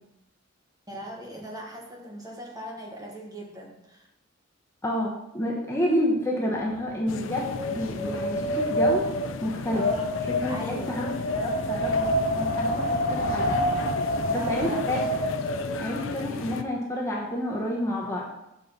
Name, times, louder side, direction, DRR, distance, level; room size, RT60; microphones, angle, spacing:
voice 1, 0.9-4.1 9.7-10.1 10.5-11.0 14.1-14.8, right 1 dB, 20° right, -1 dB, 1.3 m, -39 dB
voice 2, 4.8-9.0 9.4-9.8 10.4-12.1 12.4-13.6 14.3-15.0 15.8-18.2, left 1 dB, 15° left, -2 dB, 1.0 m, -29 dB
Wind, 6.7-15.9, equal, 50° left, 1.2 m, -28 dB
sound 1, 7.1-16.6, left 4 dB, 70° left, 0.5 m, -36 dB
7.7 x 4.3 x 5.2 m, 0.84 s
head